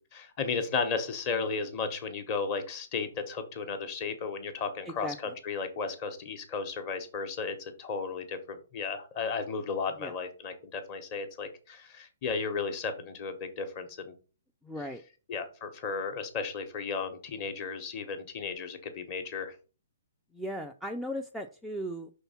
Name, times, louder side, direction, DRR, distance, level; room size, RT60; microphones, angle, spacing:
voice 1, 0.1-14.1 15.3-19.5, left 5 dB, 25° left, 7 dB, 1.0 m, -34 dB
voice 2, 4.9-5.3 10.0-10.1 14.6-15.0 20.3-22.1, equal, ahead, 3 dB, 0.3 m, -37 dB
5.8 x 3.6 x 5.7 m, 0.36 s
hypercardioid pair, 170°, 0 cm